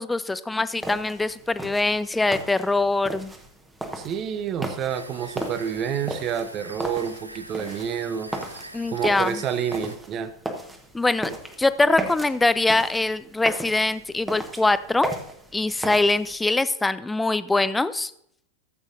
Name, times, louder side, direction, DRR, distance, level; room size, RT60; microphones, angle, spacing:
voice 1, 0.0-3.3 8.7-9.4 10.9-15.1 15.5-18.1, left 2 dB, 10° left, 15 dB, 0.4 m, -23 dB
sound 1, 0.8-16.3, right 1 dB, 10° right, 1.2 m, -36 dB
voice 2, 4.0-10.3, right 8 dB, 30° right, 12 dB, 0.7 m, -29 dB
sound 2, 4.9-10.0, right 1 dB, 85° right, 0.5 m, -43 dB
14.0 x 8.0 x 2.6 m, 0.71 s
figure-of-eight pair, 90°, 0 cm